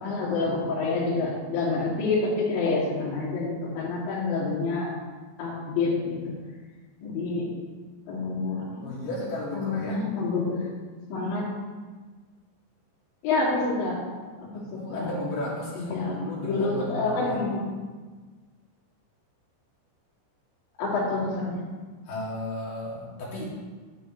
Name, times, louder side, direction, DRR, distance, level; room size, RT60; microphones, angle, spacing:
voice 1, 0.0-4.9 5.4-6.3 7.0-7.4 8.1-8.9 9.5-10.7 11.1-11.5 13.2-14.0 14.5-15.1 15.8-17.6 20.8-21.6, left 3 dB, 70° left, -5 dB, 4.6 m, -28 dB
voice 2, 8.8-10.0 14.5-17.4 22.0-23.5, left 1 dB, 50° left, -6 dB, 3.6 m, -34 dB
10.5 x 10.5 x 3.2 m, 1.4 s
omnidirectional pair, 5.5 m